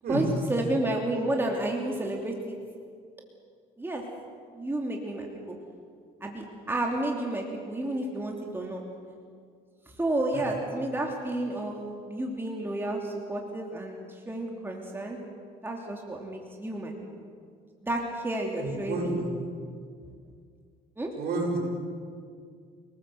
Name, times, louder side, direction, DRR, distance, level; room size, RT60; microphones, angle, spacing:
voice 1, 0.1-2.6 3.8-4.0 4.5-5.5 6.2-8.8 9.9-11.8 12.1-15.2 15.6-17.3 17.8-19.1 21.0-21.1, right 1 dB, 15° right, 0 dB, 3.1 m, -31 dB
voice 2, 18.6-19.3 21.2-21.6, right 2 dB, 65° right, 0 dB, 7.9 m, -30 dB
28.0 x 19.5 x 8.0 m, 2.1 s
cardioid pair, 110°, 17 cm